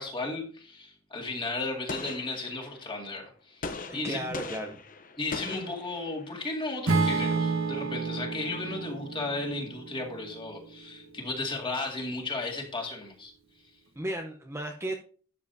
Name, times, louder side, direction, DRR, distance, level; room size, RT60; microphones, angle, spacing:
voice 1, 0.0-4.4 5.2-13.3, left 2 dB, 20° left, 0 dB, 2.2 m, -35 dB
Gunshot gunfire, 1.9-2.9 3.6-6.4, left 4 dB, 40° left, 0.8 m, -40 dB
voice 2, 3.9-4.8 14.0-14.9, right 1 dB, 10° right, 2 dB, 0.8 m, -34 dB
Acoustic guitar / Strum, 6.9-11.1, right 4 dB, 60° right, 1.3 m, -30 dB
12.0 x 7.4 x 2.7 m, 0.41 s
head